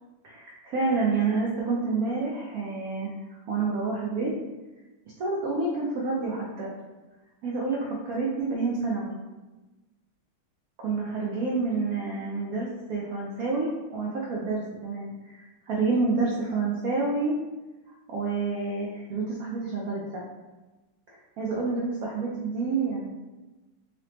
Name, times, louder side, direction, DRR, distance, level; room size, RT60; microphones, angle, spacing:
voice 1, 0.2-3.1 3.5-4.3 5.2-6.7 7.4-9.2 10.8-15.4 15.7-17.4 17.9-20.2 21.1-23.1, right 3 dB, 85° right, -3 dB, 0.8 m, -28 dB
3.9 x 3.3 x 2.9 m, 1.1 s
omnidirectional pair, 2.3 m